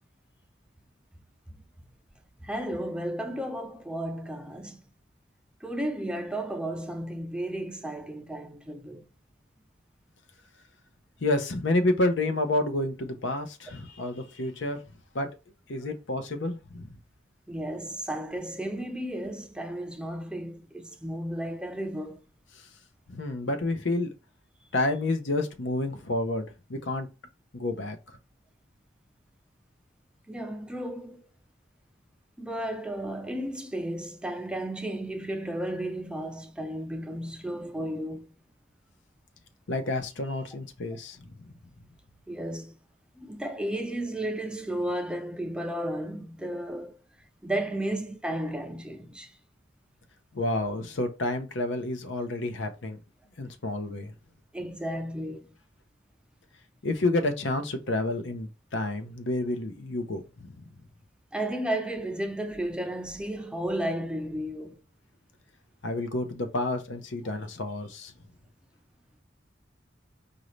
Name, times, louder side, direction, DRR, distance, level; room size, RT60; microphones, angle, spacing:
voice 1, 2.4-4.8 5.6-9.0 17.5-22.2 30.3-31.2 32.4-38.3 42.3-42.8 43.2-47.0 47.4-49.3 54.5-55.5 61.3-64.8, right 1 dB, 5° right, 0.5 m, -33 dB
voice 2, 11.2-14.8 15.1-15.3 15.7-16.9 23.1-24.1 24.7-27.1 27.5-28.0 39.7-41.2 50.3-53.0 53.4-54.1 56.8-60.5 65.8-68.1, left 2 dB, 70° left, 0.8 m, -29 dB
5.1 x 2.7 x 3.2 m
head